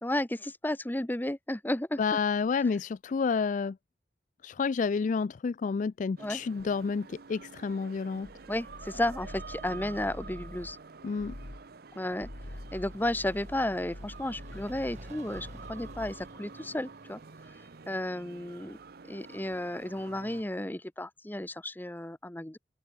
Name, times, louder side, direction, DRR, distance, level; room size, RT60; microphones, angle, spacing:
voice 1, 0.0-2.0 6.2-6.4 8.5-10.8 11.9-12.3 12.7-17.2 17.9-18.8 19.1-22.6, left 1 dB, 10° left, 0.8 m, -33 dB
voice 2, 2.0-3.8 4.4-8.3 11.0-11.3, left 5 dB, 45° left, 0.3 m, -30 dB
sound 1, 6.2-20.4, right 4 dB, 55° right, 0.7 m, -49 dB
sound 2, 8.2-10.8 11.2-11.7 12.1-16.4, left 1 dB, 70° left, 2.1 m, -46 dB
sound 3, 12.3-18.3, right 2 dB, 40° right, 1.6 m, -54 dB
open air
head